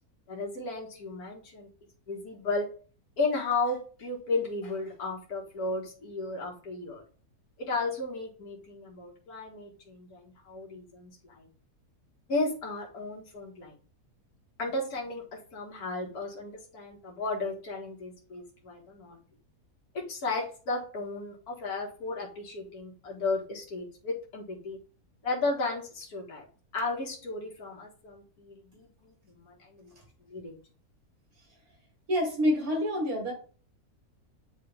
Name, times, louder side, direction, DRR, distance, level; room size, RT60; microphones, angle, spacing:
voice 1, 0.3-1.7 2.1-2.7 3.2-7.0 7.6-11.5 12.3-13.7 14.6-15.2 15.5-19.2 19.9-24.8 25.2-26.5 26.7-29.9 30.3-30.5, left 3 dB, 70° left, -1 dB, 2.1 m, -34 dB
voice 2, 32.1-33.3, equal, 65° right, 1 dB, 2.3 m, -27 dB
9.3 x 3.2 x 3.5 m, 0.39 s
omnidirectional pair, 1.7 m